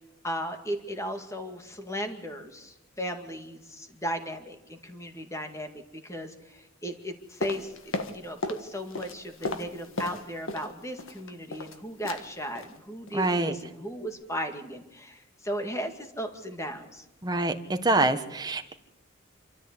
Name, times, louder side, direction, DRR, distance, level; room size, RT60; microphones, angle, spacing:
voice 1, 0.2-17.1, equal, 15° left, 6 dB, 2.1 m, -36 dB
sound 1, 7.4-8.7 8.9-10.7 11.0-11.8 12.0-12.3 12.6-12.8 13.1-13.3 13.6-13.7, left 2 dB, 80° left, 1.8 m, -35 dB
voice 2, 13.1-13.5 17.2-18.7, right 2 dB, 20° right, 6 dB, 1.4 m, -25 dB
27.0 x 13.5 x 8.5 m, 0.93 s
head